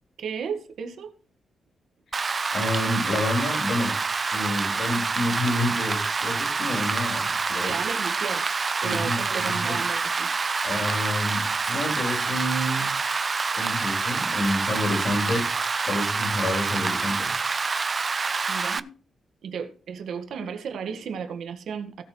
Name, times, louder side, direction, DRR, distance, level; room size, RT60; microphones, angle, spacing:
voice 1, 0.2-1.1 7.6-8.4 8.8-10.3 16.4-16.5 18.5-18.9 19.4-22.0, right 6 dB, 70° right, 1.7 m, -34 dB
Rain, 2.1-18.8, right 4 dB, 30° right, 0.4 m, -27 dB
voice 2, 2.5-3.9 4.3-7.8 8.8-9.8 10.6-12.9 13.5-15.5 15.9-17.3, left 1 dB, 55° left, 5.7 m, -29 dB
17.0 x 6.8 x 3.2 m
wide cardioid pair, 145°, 0 cm